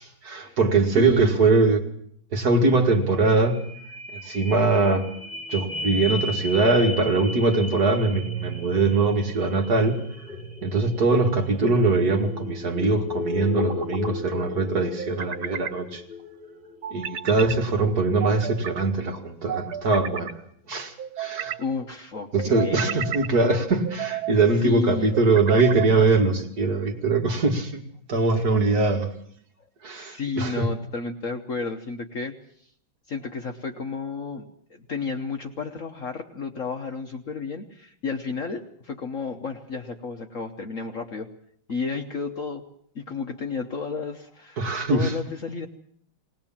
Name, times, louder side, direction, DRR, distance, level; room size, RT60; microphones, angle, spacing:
voice 1, 0.0-1.8 2.3-3.6 4.1-5.1 5.5-10.0 10.6-16.0 16.9-20.3 20.7-21.6 22.3-27.8 28.1-29.1 29.8-30.7 44.6-45.1, right 3 dB, 50° right, 3 dB, 2.4 m, -22 dB
voice 2, 0.9-1.5 21.6-23.0 24.5-25.1 29.9-32.3 33.1-41.3 41.7-42.6 42.9-44.6 44.9-45.7, left 4 dB, 45° left, 5 dB, 1.3 m, -32 dB
sound 1, 3.0-19.0 19.5-19.6, left 2 dB, 25° left, 3.8 m, -35 dB
sound 2, 11.3-12.0 13.4-14.1 15.0-15.8 16.8-17.6 18.2-18.8 19.5-20.3 21.0-21.6 22.4-23.3 23.9-24.4 25.1-25.9, right 9 dB, 80° right, 2.1 m, -33 dB
19.5 x 19.5 x 7.3 m, 0.63 s
omnidirectional pair, 2.2 m